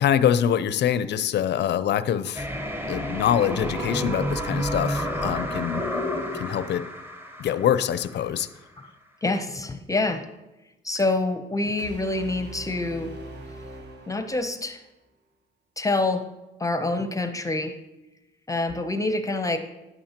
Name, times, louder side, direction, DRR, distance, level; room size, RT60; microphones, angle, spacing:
voice 1, 0.0-2.5 2.9-5.8 6.3-6.9 7.4-8.5, left 9 dB, 60° left, 15 dB, 0.5 m, -24 dB
sound 1, 2.4-8.3, equal, 10° right, 1.0 m, -30 dB
voice 2, 9.2-10.2 10.8-13.1 14.1-14.8 15.8-16.3 16.6-17.7 18.5-19.6, left 2 dB, 15° left, 8 dB, 0.7 m, -26 dB
sound 2, 11.8-14.8, right 1 dB, 55° right, 1.1 m, -42 dB
9.5 x 8.7 x 2.9 m, 1.0 s
cardioid pair, 90°, 20 cm